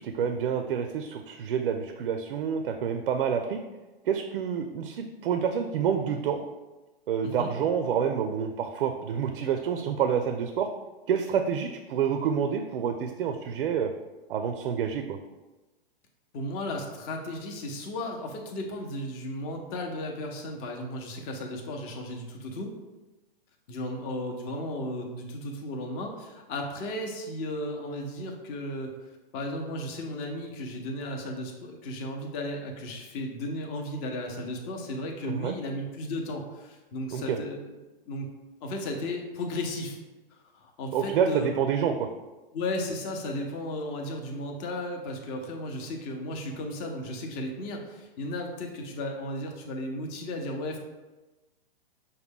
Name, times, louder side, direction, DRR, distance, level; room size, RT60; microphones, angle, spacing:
voice 1, 0.2-3.6 4.1-6.4 7.1-10.7 11.1-13.9 14.3-15.2 35.2-35.5 37.1-37.4 40.9-42.1, right 7 dB, 70° right, 6 dB, 0.5 m, -28 dB
voice 2, 16.3-22.7 23.7-28.9 29.3-37.8 38.1-38.3 38.6-40.0 40.3-41.5 42.5-50.8, left 1 dB, 30° left, 2 dB, 0.7 m, -35 dB
5.8 x 2.2 x 3.5 m, 1.1 s
hypercardioid pair, 135°, 29 cm